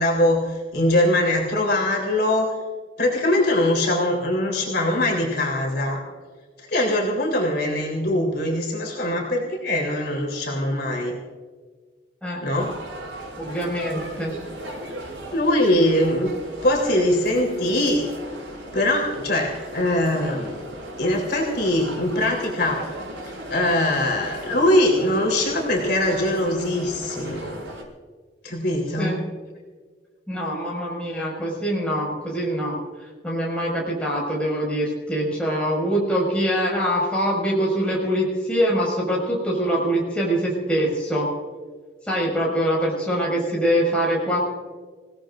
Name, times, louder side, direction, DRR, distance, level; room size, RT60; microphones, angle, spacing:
voice 1, 0.0-2.5 3.0-6.0 6.6-11.1 12.4-12.7 15.3-16.3 16.6-18.0 18.7-20.6 21.0-22.8 23.2-27.6 28.4-29.2, left 1 dB, 60° left, -2 dB, 3.8 m, -22 dB
sound 1, 12.5-27.8, right 1 dB, 90° right, 6.5 m, -37 dB
voice 2, 13.4-14.3 29.0-29.2 30.3-32.7 33.2-41.3 42.1-44.5, equal, 5° left, -4 dB, 5.7 m, -24 dB
28.5 x 17.5 x 2.6 m, 1.5 s
head